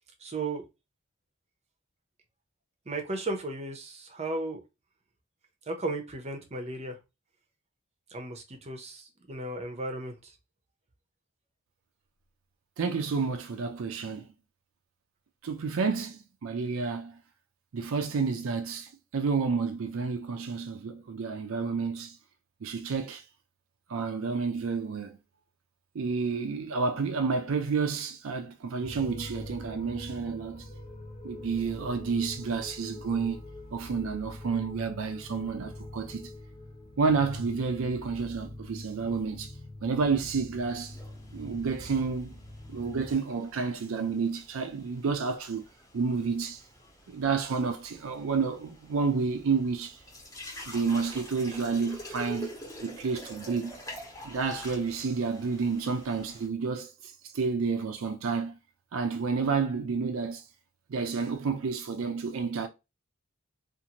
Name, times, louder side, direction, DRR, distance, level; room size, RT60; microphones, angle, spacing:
voice 1, 0.2-0.6 2.9-4.6 5.7-7.0 8.1-10.3, right 2 dB, 30° right, 0.7 m, -35 dB
voice 2, 12.8-14.3 15.4-17.2 17.7-22.2 22.6-23.2 23.9-25.2 25.9-30.7 31.2-33.4 33.7-36.3 37.0-39.5 39.8-41.0 41.3-42.4 42.7-45.6 45.9-46.6 47.1-50.0 50.7-52.5 52.8-53.7 54.2-58.6 58.9-60.4 60.9-62.7, right 5 dB, 75° right, 0.4 m, -30 dB
sound 1, 28.8-43.1, left 1 dB, 30° left, 0.7 m, -44 dB
sound 2, 40.7-56.5, equal, 15° left, 1.0 m, -47 dB
2.6 x 2.5 x 2.9 m
head